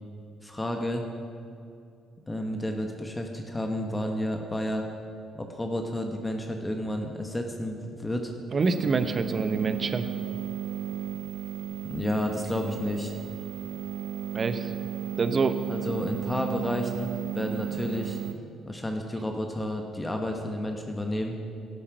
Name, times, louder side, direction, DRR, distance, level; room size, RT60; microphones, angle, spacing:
voice 1, 0.4-1.0 2.3-4.8 5.3-8.3 11.8-13.1 15.7-18.2 18.7-21.4, left 1 dB, 15° left, 3 dB, 1.3 m, -31 dB
voice 2, 8.5-10.0 14.3-14.7 15.2-15.6, right 4 dB, 45° right, 10 dB, 0.9 m, -26 dB
sound 1, 8.6-18.3, right 10 dB, 80° right, 0.7 m, -34 dB
12.5 x 8.7 x 6.2 m, 2.5 s
supercardioid pair, 60°, 0 cm